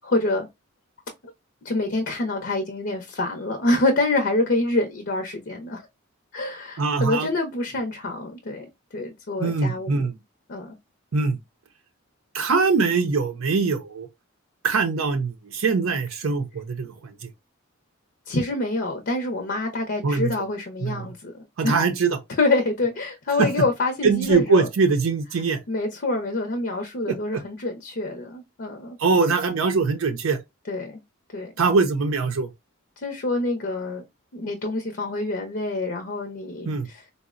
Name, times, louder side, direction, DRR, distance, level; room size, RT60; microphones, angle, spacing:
voice 1, 0.0-0.5 1.6-5.9 6.3-8.7 8.9-10.1 10.5-10.8 18.3-21.8 22.4-24.7 25.7-29.0 30.7-31.0 31.3-31.5 33.0-34.0 34.3-37.0, left 2 dB, 55° left, 0.6 m, -26 dB
voice 2, 6.8-7.3 9.4-10.1 11.1-11.4 12.3-14.1 14.6-17.1 20.0-20.3 20.8-21.1 21.6-22.2 23.4-23.5 24.0-25.6 27.1-27.2 29.0-30.4 31.6-32.5 36.7-36.9, right 4 dB, 85° right, 0.5 m, -22 dB
3.9 x 2.0 x 2.4 m
head